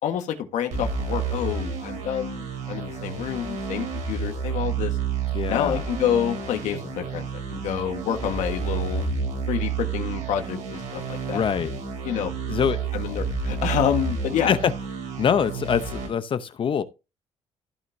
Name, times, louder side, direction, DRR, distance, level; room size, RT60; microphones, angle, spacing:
voice 1, 0.0-5.0 5.5-9.1 9.5-11.4 12.0-12.3 12.9-14.5, left 9 dB, 85° left, 1.5 m, -28 dB
sound 1, 0.7-16.1, right 5 dB, 85° right, 4.2 m, -30 dB
voice 2, 5.3-5.8 11.3-11.7 12.5-12.9 14.5-14.7 15.2-16.8, left 7 dB, 45° left, 0.8 m, -24 dB
14.5 x 5.7 x 2.7 m
cardioid pair, 125°, 12 cm